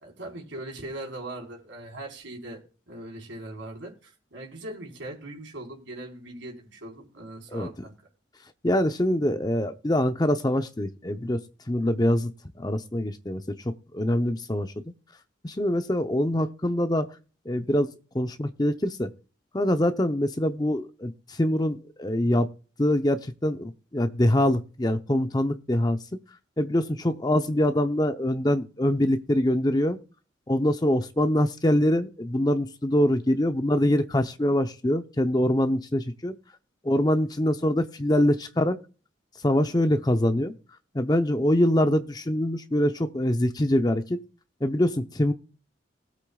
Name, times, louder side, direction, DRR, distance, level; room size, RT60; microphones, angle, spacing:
voice 1, 0.0-2.6 2.9-8.0, right 1 dB, 75° right, 4.5 m, -40 dB
voice 2, 8.6-11.4 11.7-12.3 12.6-14.7 15.4-17.1 17.5-19.1 19.5-21.1 21.4-22.5 22.8-26.0 26.6-30.0 30.5-36.3 36.8-38.8 39.4-40.5 40.9-44.2 44.6-45.3, left 1 dB, 20° left, 0.7 m, -24 dB
19.0 x 8.3 x 2.3 m
head